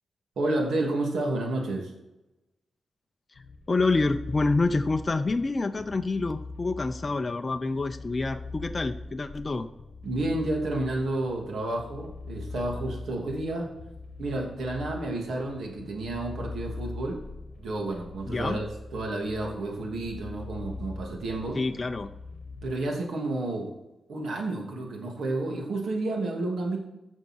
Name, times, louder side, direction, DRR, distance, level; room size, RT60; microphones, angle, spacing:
voice 1, 0.4-1.9 10.0-13.7 14.2-17.2 17.6-18.7 18.9-21.6 22.6-23.7 24.1-26.8, right 2 dB, 75° right, 0 dB, 2.9 m, -30 dB
sound 1, 3.4-22.7, left 3 dB, 55° left, 1.5 m, -42 dB
voice 2, 3.7-9.7 18.3-18.6 21.5-22.1, left 3 dB, 30° left, 7 dB, 0.6 m, -27 dB
15.0 x 6.5 x 4.7 m, 0.96 s
wide cardioid pair, 115°, 0 cm